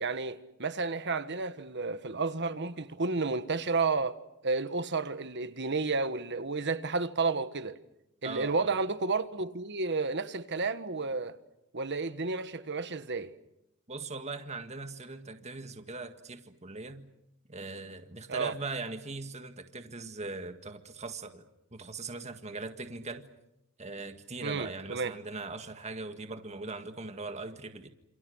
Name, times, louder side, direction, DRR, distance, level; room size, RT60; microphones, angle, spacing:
voice 1, 0.0-4.2 4.4-7.8 8.2-11.4 11.7-13.3 18.3-18.5 24.4-25.1, right 4 dB, 50° right, 1.5 m, -31 dB
voice 2, 8.2-8.7 13.9-17.1 17.5-21.5 21.7-23.3 23.8-27.9, right 3 dB, 30° right, 1.8 m, -40 dB
28.5 x 28.0 x 6.4 m
head